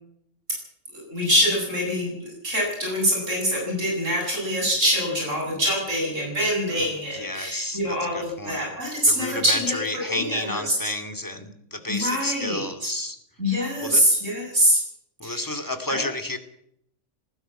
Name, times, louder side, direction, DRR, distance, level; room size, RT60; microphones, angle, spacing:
voice 1, 0.9-9.8 10.1-10.7 11.9-12.9 13.4-14.8 15.2-15.4 15.9-16.0, equal, 75° right, -1 dB, 8.5 m, -24 dB
voice 2, 6.8-8.7 9.1-13.2 13.5-14.0 15.2-16.4, left 1 dB, 15° left, 7 dB, 2.4 m, -31 dB
19.0 x 15.5 x 8.8 m, 0.74 s
omnidirectional pair, 1.3 m